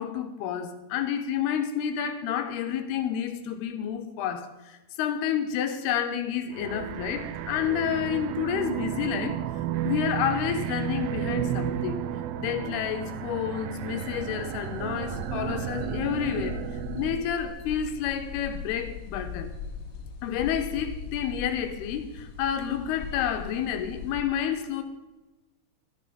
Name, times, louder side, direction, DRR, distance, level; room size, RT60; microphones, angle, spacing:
voice 1, 0.0-9.4 9.8-12.0 12.4-16.6 16.9-19.5 20.2-24.8, left 9 dB, 80° left, 2.8 m, -29 dB
sound 1, 6.5-17.3, right 12 dB, 90° right, 2.0 m, -33 dB
sound 2, 14.0-24.2, left 5 dB, 45° left, 2.3 m, -40 dB
12.0 x 11.0 x 5.0 m
omnidirectional pair, 4.7 m